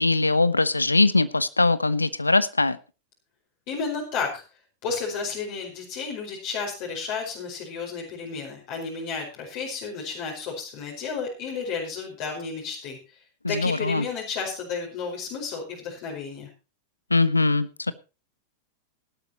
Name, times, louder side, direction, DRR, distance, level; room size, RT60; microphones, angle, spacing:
voice 1, 0.0-2.8 13.4-14.1 17.1-17.9, left 3 dB, 80° left, 17 dB, 1.0 m, -21 dB
voice 2, 3.7-4.4 4.8-16.5, left 5 dB, 45° left, -1 dB, 5.1 m, -32 dB
18.0 x 12.5 x 3.0 m, 0.31 s
figure-of-eight pair, 90°, 0 cm